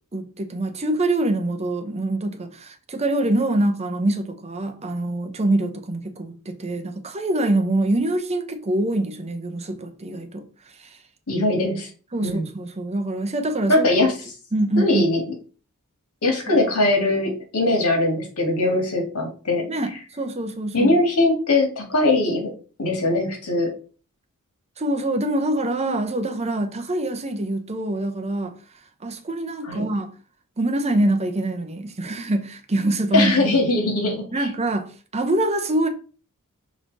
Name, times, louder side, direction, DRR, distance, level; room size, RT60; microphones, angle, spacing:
voice 1, 0.1-10.4 10.8-11.0 12.1-13.9 14.5-15.1 19.7-21.0 24.8-28.5 29.0-30.1 30.6-33.5 34.3-35.9, right 1 dB, 30° right, 0.8 m, -24 dB
voice 2, 11.3-11.9 12.2-12.4 13.7-14.1 14.8-15.2 16.2-19.7 20.7-22.5 22.8-23.7 29.7-29.8 33.1-34.3, left 2 dB, 85° left, 1.9 m, -21 dB
6.0 x 4.1 x 4.0 m
head